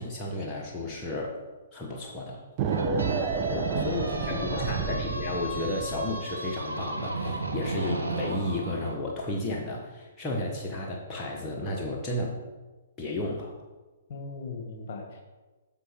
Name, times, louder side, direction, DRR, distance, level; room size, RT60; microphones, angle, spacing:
voice 1, 0.0-1.4 1.7-2.4 4.4-12.4 13.0-13.6, left 1 dB, 20° left, -3 dB, 1.2 m, -33 dB
sound 1, 2.6-6.3, right 7 dB, 35° right, 0.7 m, -31 dB
sound 2, 2.7-8.9, right 1 dB, 90° right, 1.1 m, -34 dB
voice 2, 3.5-4.7 14.1-15.2, left 5 dB, 45° left, 2 dB, 1.7 m, -36 dB
6.8 x 6.0 x 5.1 m, 1.2 s
figure-of-eight pair, 125°, 0 cm